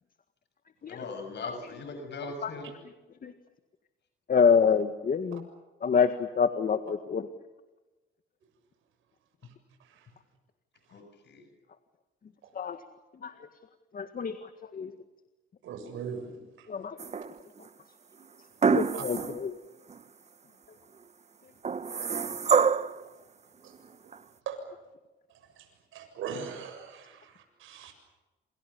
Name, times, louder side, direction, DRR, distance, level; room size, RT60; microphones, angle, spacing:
voice 1, 0.9-2.7 10.9-11.4, left 3 dB, 60° left, 7 dB, 6.6 m, -40 dB
voice 2, 4.3-5.5 5.8-7.3 12.6-12.8 13.2-13.3 13.9-14.4 14.7-14.9 16.7-17.0 18.7-19.5, left 6 dB, 45° left, 9 dB, 1.8 m, -26 dB
voice 3, 15.6-16.7 18.9-19.0 21.9-22.0 23.0-23.1 23.6-23.7 24.5-24.6 25.6-25.7 25.9-27.9, right 6 dB, 85° right, 5 dB, 7.2 m, -40 dB
sound 1, 17.0-17.6 18.6-19.4 19.9-20.0 21.6-23.0 24.1-24.2, right 6 dB, 35° right, 1.1 m, -26 dB
28.0 x 27.0 x 7.0 m, 1.1 s
cardioid pair, 90°, 20 cm